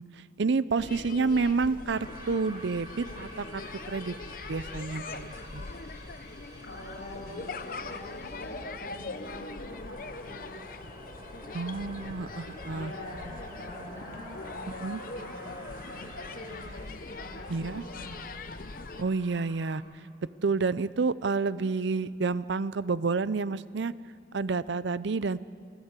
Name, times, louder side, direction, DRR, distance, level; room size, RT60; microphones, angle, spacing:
voice 1, 0.0-4.1 4.5-5.6 11.5-12.9 14.8-15.0 17.5-17.8 19.0-19.8 20.4-23.9 24.3-25.4, right 4 dB, 70° right, 17 dB, 0.5 m, -29 dB
sound 1, 0.8-19.0, left 3 dB, 45° left, 0.8 m, -42 dB
sound 2, 1.9-19.8, equal, 20° right, 3.2 m, -49 dB
voice 2, 6.6-10.6 12.7-16.8 17.1-18.3, left 1 dB, 65° left, -8 dB, 7.2 m, -44 dB
26.5 x 14.5 x 8.2 m, 2.1 s
head